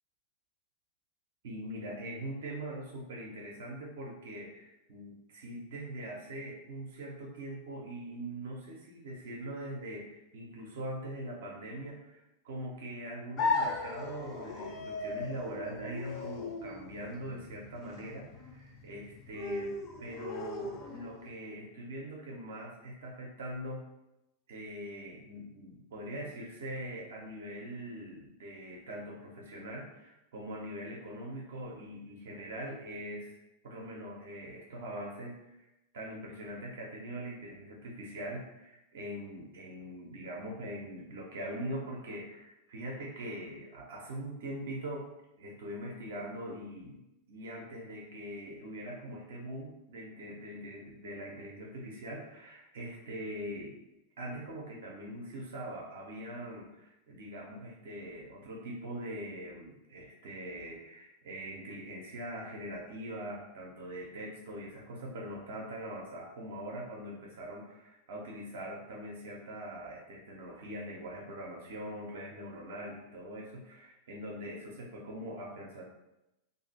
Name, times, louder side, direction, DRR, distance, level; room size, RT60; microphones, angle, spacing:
voice 1, 1.4-23.8 24.5-33.4 33.6-35.7 35.9-45.1 45.4-47.0 47.3-53.8 54.2-75.8, right 1 dB, 60° right, -1 dB, 0.5 m, -42 dB
sound 1, 13.4-21.3, left 3 dB, 35° left, 0.5 m, -37 dB
2.5 x 2.4 x 2.6 m, 0.91 s
figure-of-eight pair, 90°, 0 cm